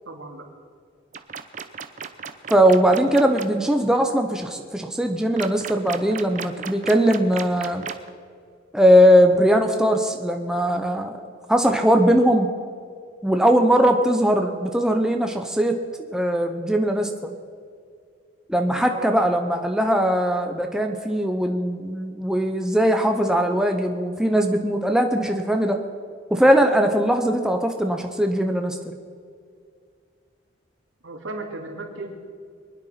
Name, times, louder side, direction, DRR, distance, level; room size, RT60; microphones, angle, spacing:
voice 1, 0.1-0.5 18.9-19.2 31.0-32.1, right 2 dB, 80° right, 2 dB, 2.5 m, -35 dB
sound 1, 1.1-3.5 5.4-8.1, right 6 dB, 40° right, 0.7 m, -34 dB
voice 2, 2.5-7.8 8.7-11.2 11.5-12.5 13.2-15.8 16.1-17.3 18.5-25.8 26.3-28.8, equal, 5° right, 3 dB, 0.8 m, -20 dB
24.5 x 9.7 x 5.8 m, 2.2 s
head